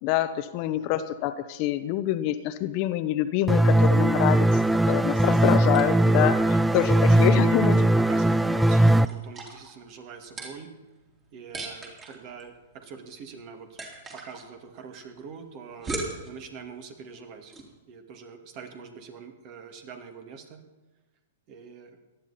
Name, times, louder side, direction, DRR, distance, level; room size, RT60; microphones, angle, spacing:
voice 1, 0.0-4.4 4.9-7.7, left 13 dB, 45° left, 11 dB, 0.9 m, -26 dB
voice 2, 0.5-1.0 6.9-10.7 11.3-13.8 14.1-17.5 17.9-20.6 21.5-22.0, right 6 dB, 45° right, 5 dB, 2.2 m, -43 dB
sound 1, 3.5-9.0, right 1 dB, 5° right, 0.4 m, -20 dB
sound 2, 5.6-17.8, right 3 dB, 25° right, 3.4 m, -42 dB
18.0 x 12.0 x 4.3 m, 1.2 s
hypercardioid pair, 120°, 0 cm